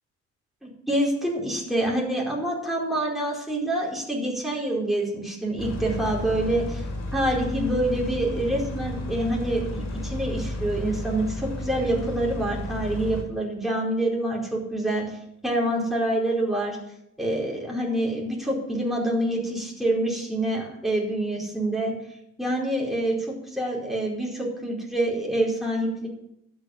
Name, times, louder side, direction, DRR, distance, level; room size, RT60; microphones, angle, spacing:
voice 1, 0.6-6.8 7.1-16.8 17.2-21.9 22.4-23.2 23.5-26.1, right 1 dB, ahead, -3 dB, 4.7 m, -26 dB
sound 1, 5.6-13.2, left 1 dB, 60° left, 4.8 m, -33 dB
12.5 x 7.0 x 7.8 m, 0.79 s
cardioid pair, 90°, 30 cm